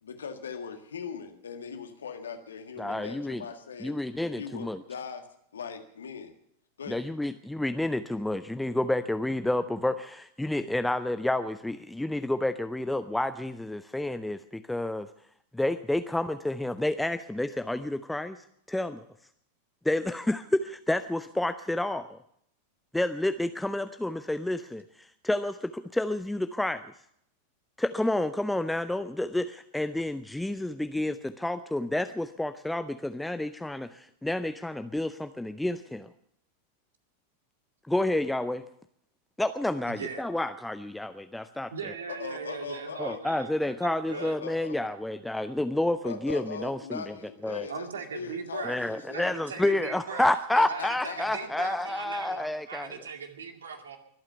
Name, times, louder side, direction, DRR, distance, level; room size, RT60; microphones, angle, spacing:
voice 1, 0.0-5.2 5.5-6.3 6.8-7.0 42.1-43.2 44.1-44.8 46.0-47.9 48.1-50.0 50.5-51.7, left 6 dB, 70° left, 6 dB, 1.8 m, -40 dB
voice 2, 2.8-3.4 3.8-4.8 6.9-15.1 15.5-19.0 19.8-22.2 22.9-26.8 27.8-36.1 37.9-38.6 39.4-41.7 43.0-47.1 47.4-47.7 48.6-52.9, left 1 dB, 5° left, 11 dB, 0.5 m, -30 dB
voice 3, 39.9-40.2 41.7-43.5 43.8-44.4 47.7-48.9 49.1-50.3 50.7-54.0, right 6 dB, 70° right, 5 dB, 2.2 m, -39 dB
23.5 x 8.9 x 6.8 m, 0.72 s
figure-of-eight pair, 90°, 0 cm